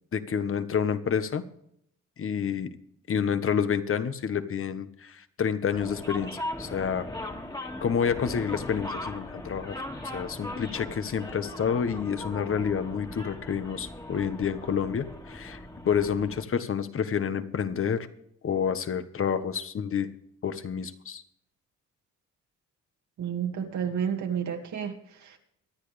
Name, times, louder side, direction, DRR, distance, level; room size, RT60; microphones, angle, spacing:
voice 1, 0.1-1.4 2.2-2.7 3.1-7.1 7.8-18.1 18.4-20.1 20.4-21.2, left 7 dB, 45° left, 11 dB, 1.4 m, -29 dB
sound 1, 5.7-16.4, left 1 dB, 15° left, 2.2 m, -39 dB
voice 2, 23.2-25.4, right 8 dB, 70° right, 3 dB, 2.3 m, -31 dB
24.5 x 9.4 x 3.4 m, 0.72 s
cardioid pair, 90°, 30 cm